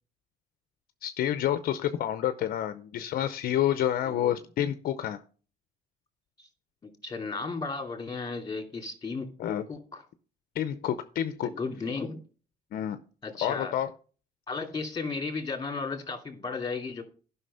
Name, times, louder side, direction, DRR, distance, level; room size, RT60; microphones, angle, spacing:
voice 1, 1.0-5.2 9.4-9.7 10.6-11.5 12.7-13.0 13.4-13.9, left 11 dB, 60° left, 11 dB, 0.6 m, -28 dB
voice 2, 7.0-9.3 9.7-10.0 11.4-12.2 13.2-13.7 14.5-17.0, left 4 dB, 25° left, 4 dB, 2.6 m, -34 dB
11.0 x 5.8 x 5.5 m, 0.40 s
cardioid pair, 110°, 17 cm